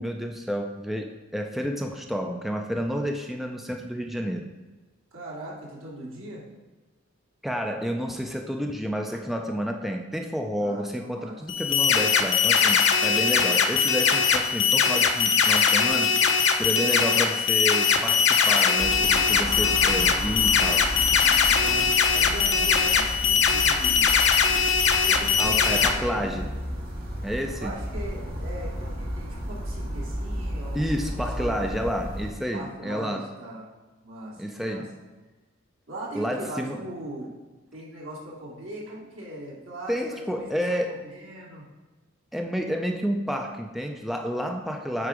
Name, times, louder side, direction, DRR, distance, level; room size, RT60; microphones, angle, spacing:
voice 1, 0.0-4.5 7.4-16.1 16.5-20.9 25.4-26.5 27.2-27.7 30.7-33.3 34.4-35.0 36.1-36.8 39.9-41.0 42.3-45.1, equal, ahead, 3 dB, 0.4 m, -30 dB
voice 2, 5.1-6.4 10.6-11.4 21.5-24.1 25.0-26.3 27.6-31.6 32.5-33.6 34.0-34.8 35.9-37.3 37.7-41.6, right 1 dB, 80° right, -4 dB, 2.3 m, -39 dB
sound 1, 11.5-25.9, left 6 dB, 65° left, 0.7 m, -21 dB
sound 2, 18.8-32.3, equal, 50° right, 1.9 m, -33 dB
8.1 x 4.9 x 4.9 m, 1.2 s
head